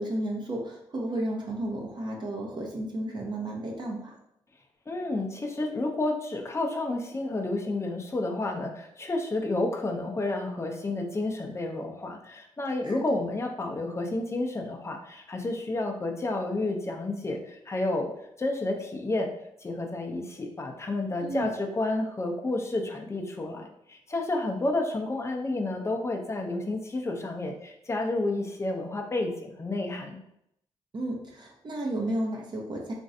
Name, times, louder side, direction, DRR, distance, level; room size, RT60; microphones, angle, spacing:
voice 1, 0.0-4.1 12.8-13.2 21.2-21.5 30.9-32.9, right 1 dB, 40° right, -2 dB, 0.8 m, -33 dB
voice 2, 4.9-18.1 18.4-19.3 19.6-30.2, left 2 dB, 25° left, 2 dB, 0.6 m, -30 dB
3.0 x 2.5 x 2.6 m, 0.77 s
supercardioid pair, 55°, 12 cm